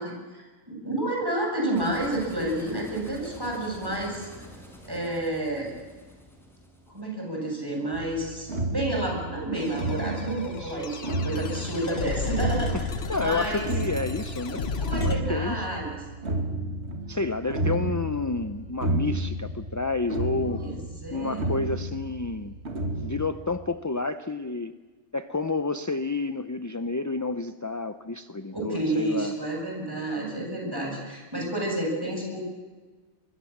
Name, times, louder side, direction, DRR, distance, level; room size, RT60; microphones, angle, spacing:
voice 1, 0.0-4.3 4.8-5.7 6.9-12.8 13.1-13.7 14.8-16.0 20.4-21.5 28.5-32.4, right 1 dB, 15° right, 0 dB, 7.7 m, -30 dB
sound 1, 1.7-7.0, right 1 dB, ahead, 5.2 m, -46 dB
sound 2, 7.9-23.3, right 2 dB, 60° right, 2.6 m, -32 dB
sound 3, 9.5-15.2, left 5 dB, 55° left, 1.5 m, -34 dB
voice 2, 13.1-14.7 15.0-15.7 17.1-20.6 21.1-22.6 23.0-24.7 25.1-29.4, left 3 dB, 20° left, 10 dB, 0.4 m, -30 dB
25.0 x 22.0 x 7.3 m, 1.3 s
omnidirectional pair, 1.3 m